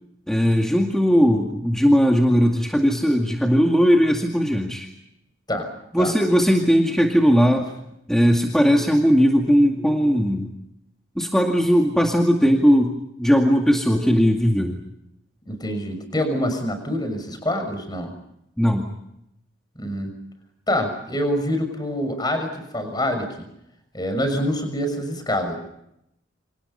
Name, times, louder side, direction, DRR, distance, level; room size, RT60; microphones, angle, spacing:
voice 1, 0.3-4.9 5.9-7.7 8.1-10.5 11.2-14.8 18.6-18.9, equal, 5° left, 1 dB, 2.2 m, -18 dB
voice 2, 15.5-18.1 19.7-20.1 20.7-23.3 23.9-25.6, left 1 dB, 20° left, 7 dB, 6.4 m, -25 dB
29.0 x 28.0 x 5.6 m, 0.81 s
head